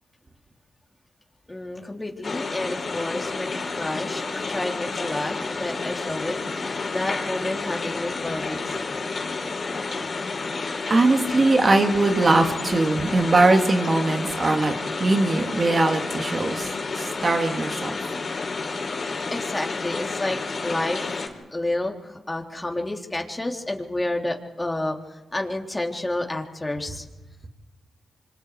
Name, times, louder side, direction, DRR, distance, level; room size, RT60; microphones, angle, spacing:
voice 1, 1.5-8.8 19.3-21.0 21.5-27.0, left 1 dB, 20° left, 2 dB, 3.9 m, -30 dB
sound 1, 2.2-21.3, left 4 dB, 55° left, 4.3 m, -30 dB
voice 2, 10.9-14.7 15.0-16.7 16.9-17.9, right 2 dB, 45° right, 4 dB, 3.1 m, -20 dB
26.5 x 25.5 x 5.0 m, 1.1 s
supercardioid pair, 45°, 0 cm